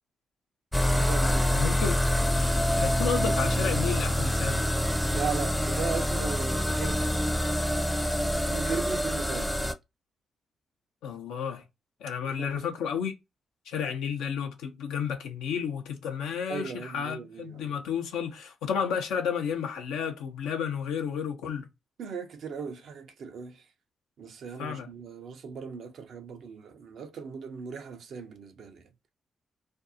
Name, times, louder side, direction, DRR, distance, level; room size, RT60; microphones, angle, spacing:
sound 1, 0.7-9.7, equal, 5° left, 0.5 m, -26 dB
voice 1, 0.8-1.6 5.1-7.1 8.5-9.5 12.3-12.6 16.5-17.7 22.0-23.6 24.2-28.8, right 6 dB, 70° right, 0.6 m, -37 dB
voice 2, 1.5-2.0 2.8-4.7 11.0-11.6 12.0-13.1 13.7-21.7 24.6-24.9, left 7 dB, 85° left, 0.6 m, -32 dB
2.6 x 2.3 x 2.5 m
hypercardioid pair, 45°, 0 cm